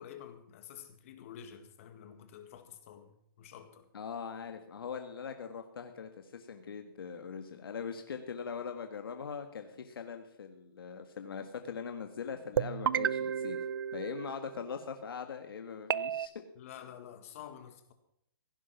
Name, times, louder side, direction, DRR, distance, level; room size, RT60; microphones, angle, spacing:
voice 1, 0.0-3.9 16.6-17.9, left 9 dB, 35° left, 8 dB, 1.9 m, -49 dB
voice 2, 3.9-13.6 13.9-16.3, left 6 dB, 80° left, 6 dB, 1.6 m, -41 dB
sound 1, 12.6-14.7 15.9-16.3, right 8 dB, 70° right, 0.6 m, -32 dB
16.5 x 10.5 x 5.9 m, 0.75 s
hypercardioid pair, 165°, 12 cm